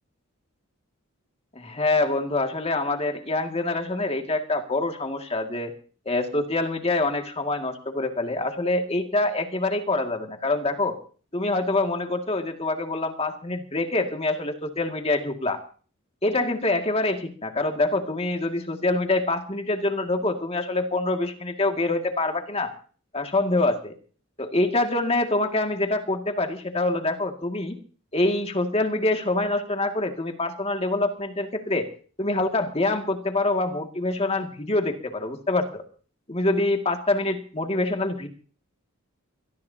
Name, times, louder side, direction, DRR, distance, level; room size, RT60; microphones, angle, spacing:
voice 1, 1.6-5.7 6.1-11.0 11.3-15.6 16.2-22.7 23.1-23.9 24.4-27.8 28.1-31.9 32.2-35.8 36.3-38.3, left 2 dB, 30° left, 4 dB, 2.2 m, -25 dB
25.0 x 19.0 x 2.8 m, 0.42 s
head